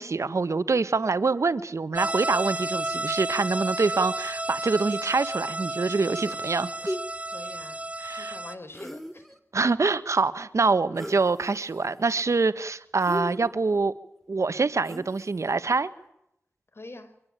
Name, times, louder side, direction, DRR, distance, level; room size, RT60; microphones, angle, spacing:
voice 1, 0.0-7.0 8.0-8.4 9.5-13.9 14.3-15.9, right 4 dB, 75° right, 13 dB, 1.3 m, -25 dB
sound 1, 1.9-8.6, right 2 dB, 25° right, 1.8 m, -32 dB
sound 2, 6.2-6.5 6.8-7.0 8.7-9.4 10.9-11.2 11.7-12.2 13.0-13.8 14.8-15.3, equal, 5° left, 3.4 m, -36 dB
voice 2, 7.3-7.8 8.1-9.3 16.7-17.1, left 2 dB, 50° left, 10 dB, 4.8 m, -44 dB
24.5 x 22.5 x 9.0 m, 0.78 s
wide cardioid pair, 50°, 5 cm